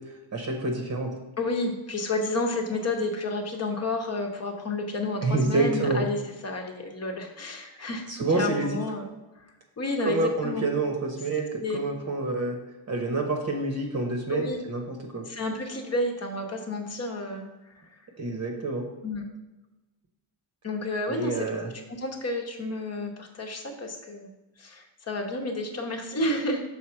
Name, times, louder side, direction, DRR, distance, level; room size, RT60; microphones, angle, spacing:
voice 1, 0.3-1.1 5.2-6.0 7.7-7.8 8.1-8.8 10.0-12.6 12.9-15.3 18.2-18.9 21.1-21.7, right 3 dB, 30° right, 2 dB, 1.0 m, -28 dB
voice 2, 1.4-6.2 6.4-8.1 8.4-9.1 9.8-10.7 11.6-11.8 14.3-14.6 15.3-17.8 19.0-19.2 20.6-21.5 22.0-24.3 24.6-26.6, left 2 dB, 30° left, 3 dB, 1.1 m, -30 dB
6.3 x 4.0 x 5.7 m, 1.1 s
cardioid pair, 140°, 48 cm